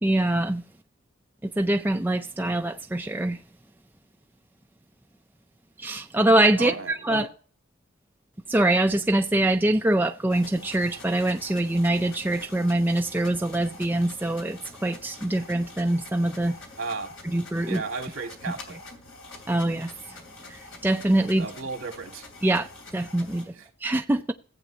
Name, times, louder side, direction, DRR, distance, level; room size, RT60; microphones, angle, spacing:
voice 1, 0.0-0.6 1.4-3.4 5.8-7.3 8.5-16.6 17.3-17.8 19.5-19.9 20.5-21.5 22.4-22.7 22.9-23.5 23.8-24.3, right 1 dB, 10° right, 0.4 m, -24 dB
voice 2, 6.6-7.3 16.8-17.1 17.7-18.8 21.4-22.2 23.5-23.7, right 4 dB, 70° right, 2.2 m, -34 dB
sound 1, 10.3-23.5, left 3 dB, 65° left, 2.9 m, -46 dB
15.5 x 8.0 x 2.8 m
head